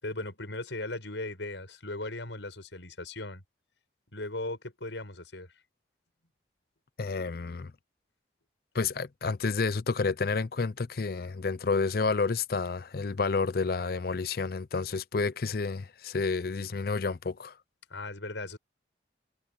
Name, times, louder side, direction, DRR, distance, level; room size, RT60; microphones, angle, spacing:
voice 1, 0.0-3.4 4.1-5.5 17.9-18.6, left 2 dB, 90° left, 6.9 m, -37 dB
voice 2, 7.0-7.7 8.7-17.5, left 4 dB, 55° left, 0.5 m, -30 dB
head